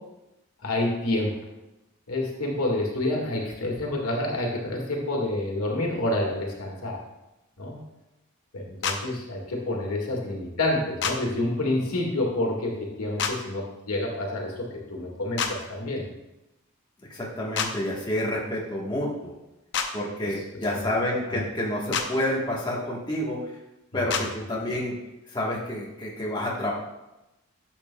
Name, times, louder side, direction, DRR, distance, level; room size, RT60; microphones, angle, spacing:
voice 1, 0.6-1.3 2.1-7.0 7.6-7.8 8.5-16.1 20.2-20.3 20.8-20.9 21.3-21.4 23.9-24.0, left 1 dB, 85° left, -1 dB, 1.9 m, -28 dB
sound 1, 8.8-9.0 11.0-11.2 13.2-13.3 15.4-15.5 17.5-17.7 19.7-19.9 21.9-22.1 24.1-24.3, left 6 dB, 50° left, 0.7 m, -26 dB
voice 2, 17.1-19.3 19.9-23.5 23.9-25.0 25.3-26.7, left 1 dB, 20° left, -4 dB, 1.2 m, -29 dB
11.0 x 7.6 x 2.3 m, 0.95 s
head